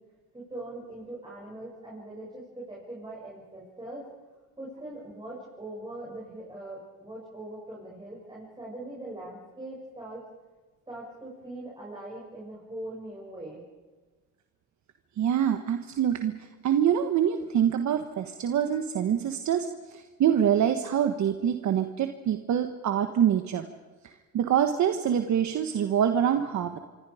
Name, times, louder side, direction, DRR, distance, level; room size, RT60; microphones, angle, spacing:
voice 1, 0.3-4.0 4.6-10.2 10.9-13.6, right 1 dB, 15° right, -5 dB, 7.5 m, -41 dB
voice 2, 15.2-16.3 16.6-23.7 24.3-26.8, right 9 dB, 70° right, 7 dB, 1.4 m, -25 dB
26.5 x 24.0 x 5.1 m, 1.3 s
cardioid pair, 90°, 30 cm